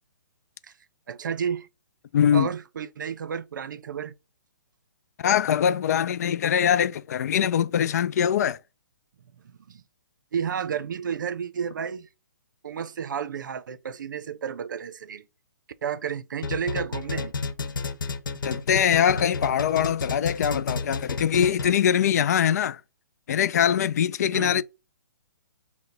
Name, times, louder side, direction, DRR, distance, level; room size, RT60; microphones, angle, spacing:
voice 1, 1.1-1.7 2.3-4.1 9.4-9.8 10.3-12.1 12.6-15.2 15.8-17.3 24.3-24.6, right 7 dB, 70° right, 0.5 m, -31 dB
voice 2, 2.1-2.5 5.2-8.6 18.4-22.8 23.3-24.6, left 9 dB, 50° left, 0.4 m, -22 dB
sound 1, 16.4-21.9, left 4 dB, 75° left, 0.9 m, -31 dB
5.7 x 2.1 x 3.8 m
hypercardioid pair, 135°, 11 cm